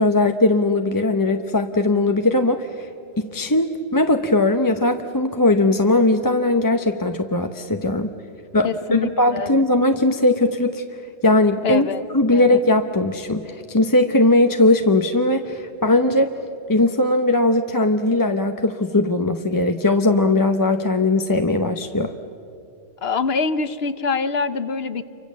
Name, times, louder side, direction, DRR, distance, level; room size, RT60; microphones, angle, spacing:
voice 1, 0.0-2.9 3.2-8.1 8.5-10.8 11.2-11.9 12.1-16.3 16.7-22.1, left 2 dB, 20° left, 6 dB, 0.7 m, -19 dB
voice 2, 8.6-9.6 11.6-12.0 12.3-12.6 23.0-25.0, left 5 dB, 65° left, 12 dB, 1.1 m, -25 dB
28.5 x 24.5 x 7.4 m, 2.7 s
omnidirectional pair, 1.2 m